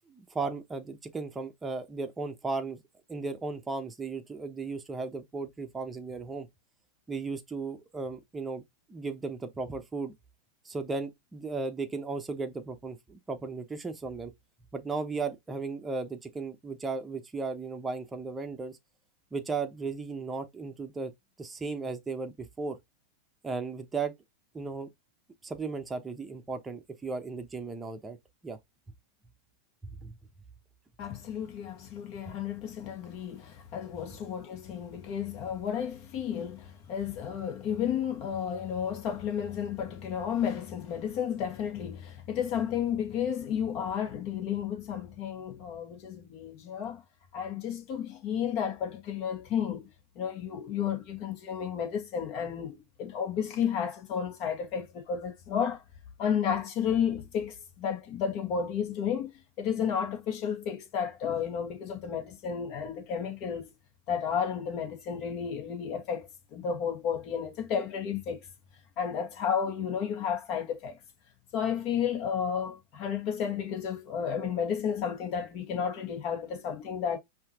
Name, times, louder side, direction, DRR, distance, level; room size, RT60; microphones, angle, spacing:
voice 1, 0.1-2.8 3.1-6.5 7.1-8.6 8.9-10.1 10.6-14.3 14.7-18.8 19.3-21.1 21.4-22.8 23.4-24.1 24.5-24.9 25.4-28.2 28.4-28.6 29.8-30.2, right 4 dB, 10° right, 0.9 m, -35 dB
voice 2, 31.0-47.0 47.3-49.9 50.2-55.8 56.2-59.3 59.6-63.7 64.1-68.5 69.0-71.0 71.5-77.2, left 8 dB, 40° left, 1.9 m, -32 dB
5.6 x 2.9 x 3.0 m
supercardioid pair, 145°, 0 cm